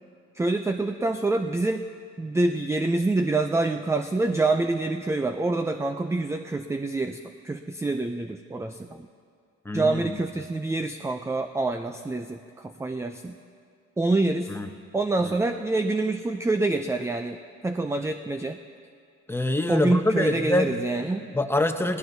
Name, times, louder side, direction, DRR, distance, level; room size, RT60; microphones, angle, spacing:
voice 1, 0.3-1.9 2.2-7.2 7.4-9.1 9.7-13.4 14.0-14.5 14.9-18.6 19.7-21.4, right 2 dB, 10° right, 7 dB, 0.4 m, -26 dB
voice 2, 9.6-10.1 14.5-14.7 19.3-20.7 21.3-22.0, left 1 dB, 10° left, 6 dB, 0.8 m, -25 dB
18.5 x 15.5 x 2.7 m, 2.3 s
cardioid pair, 90°, 30 cm